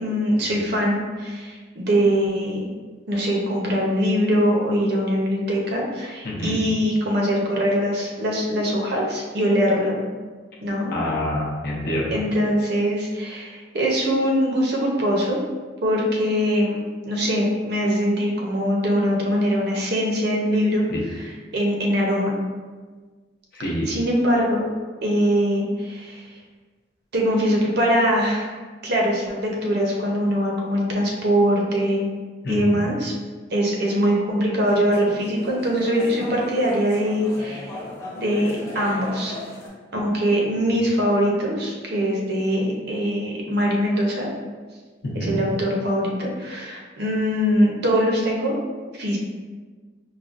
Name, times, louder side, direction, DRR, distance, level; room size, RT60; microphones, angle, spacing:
voice 1, 0.0-2.7 3.1-10.0 10.6-11.0 12.1-15.4 15.8-22.3 23.6-24.7 25.0-26.2 27.1-28.5 28.8-32.1 32.5-33.1 33.5-37.8 38.2-39.3 39.9-44.3 45.1-48.6 48.9-49.2, equal, 60° right, -1 dB, 0.7 m, -22 dB
voice 2, 6.2-6.6 10.9-12.2 20.9-21.0 23.5-23.9 32.4-32.9 45.0-45.4, left 1 dB, 55° left, -4 dB, 0.6 m, -27 dB
sound 1, 34.7-39.7, left 1 dB, 15° left, 0.6 m, -36 dB
4.8 x 2.2 x 2.4 m, 1.4 s
head